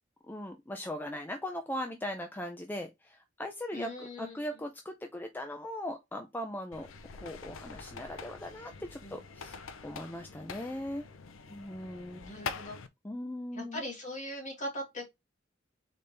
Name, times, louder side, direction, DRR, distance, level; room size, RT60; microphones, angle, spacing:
voice 1, 0.2-6.9 7.2-11.0 11.5-12.3 13.0-13.8, left 1 dB, 10° left, 0.4 m, -39 dB
voice 2, 3.7-4.7 9.0-9.2 11.8-12.8 13.5-15.1, left 1 dB, 40° left, 2.2 m, -41 dB
sound 1, 6.7-12.9, left 5 dB, 90° left, 0.5 m, -45 dB
4.1 x 3.4 x 3.3 m
head